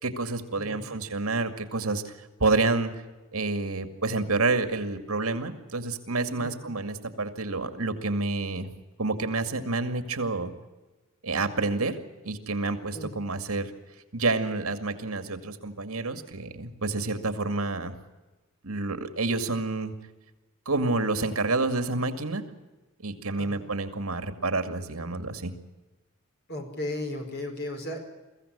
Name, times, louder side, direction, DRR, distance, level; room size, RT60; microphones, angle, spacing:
voice 1, 0.0-2.1 2.4-2.9 3.3-8.7 9.0-10.5 11.2-12.0 12.2-13.7 14.1-17.9 18.6-19.9 20.7-22.4 23.0-25.5, right 3 dB, 80° right, 8 dB, 2.3 m, -28 dB
voice 2, 0.5-1.0 6.3-6.7 12.9-13.3 23.4-23.6 26.5-28.0, left 1 dB, 50° left, 4 dB, 4.9 m, -36 dB
23.5 x 15.5 x 9.9 m, 1.2 s
head